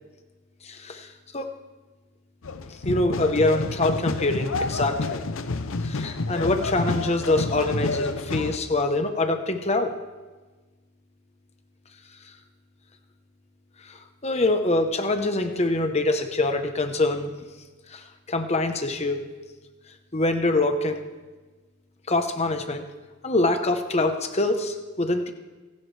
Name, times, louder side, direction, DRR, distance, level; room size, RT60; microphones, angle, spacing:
voice 1, 0.6-1.5 2.8-5.3 5.8-9.9 13.9-17.3 17.9-19.3 20.1-21.1 22.1-22.9 23.2-25.3, left 2 dB, 30° left, 6 dB, 1.1 m, -25 dB
sound 1, 2.4-8.6, left 3 dB, 65° left, 0.7 m, -29 dB
27.5 x 11.0 x 3.4 m, 1.3 s
head